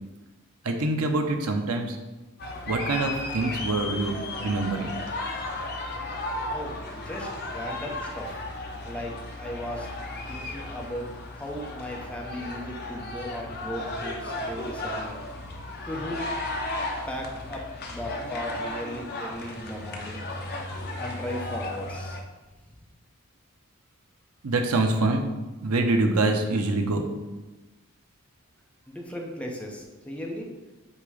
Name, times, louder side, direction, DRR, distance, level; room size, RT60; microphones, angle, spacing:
voice 1, 0.6-2.0 2.7-4.2 4.4-4.9 24.4-25.2 25.6-27.0, right 2 dB, 80° right, 4 dB, 0.8 m, -25 dB
sound 1, 2.4-22.2, left 2 dB, 45° left, 0.9 m, -35 dB
voice 2, 6.5-8.4 8.8-9.9 10.3-15.2 15.9-16.3 17.1-20.3 21.0-22.2 22.7-22.8 28.9-30.5, left 1 dB, 5° left, -1 dB, 0.9 m, -37 dB
8.5 x 3.0 x 4.9 m, 1.1 s
head